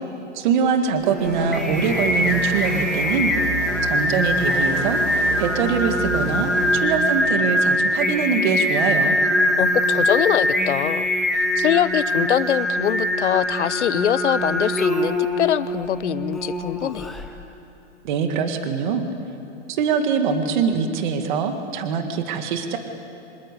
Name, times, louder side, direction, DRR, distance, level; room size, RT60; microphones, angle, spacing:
voice 1, 0.3-3.3 3.9-9.2 18.0-19.1 19.7-22.8, right 6 dB, 40° right, 6 dB, 1.9 m, -23 dB
Singing, 1.0-17.3, left 1 dB, ahead, 0.6 m, -23 dB
sound 1, 1.2-6.8, right 3 dB, 75° right, 6.9 m, -31 dB
voice 2, 9.6-11.1 11.6-17.1, left 10 dB, 65° left, 15 dB, 1.0 m, -23 dB
27.0 x 26.0 x 8.3 m, 2.8 s
hypercardioid pair, 165°, 37 cm